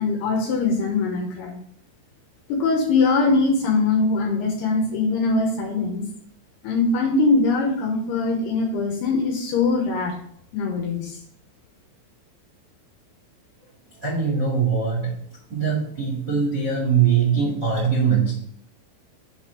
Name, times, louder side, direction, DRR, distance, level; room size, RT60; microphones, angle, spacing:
voice 1, 0.0-1.5 2.5-6.0 6.6-10.1 10.5-11.2, left 3 dB, 70° left, 0 dB, 2.8 m, -22 dB
voice 2, 14.0-15.1 15.5-18.3, right 6 dB, 40° right, -3 dB, 1.5 m, -21 dB
7.4 x 4.1 x 6.7 m, 0.65 s
omnidirectional pair, 5.6 m